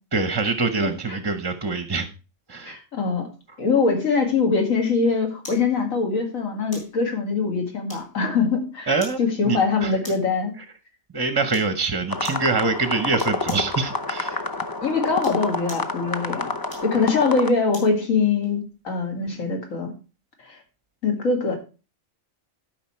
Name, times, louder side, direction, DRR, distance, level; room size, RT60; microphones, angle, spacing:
voice 1, 0.1-2.1 2.5-2.8 8.9-9.2 9.4-10.0 10.6-10.7 11.1-14.3, right 4 dB, 25° right, 9 dB, 0.6 m, -24 dB
voice 2, 2.7-3.3 3.6-8.9 9.2-10.6 14.3-14.4 14.8-16.5 16.8-19.9 20.4-20.6 21.0-21.6, left 4 dB, 80° left, 3 dB, 2.5 m, -23 dB
sound 1, 5.4-5.7 6.7-7.0 7.9-8.3 9.0-9.2 10.0-10.4 11.5-11.8 12.2-12.5 13.2-13.7 15.1-15.9 16.7-18.0 18.4-18.6, left 1 dB, 60° left, 3.8 m, -41 dB
sound 2, 12.1-17.5, left 3 dB, 25° left, 0.4 m, -29 dB
12.0 x 5.3 x 4.3 m, 0.32 s
omnidirectional pair, 1.4 m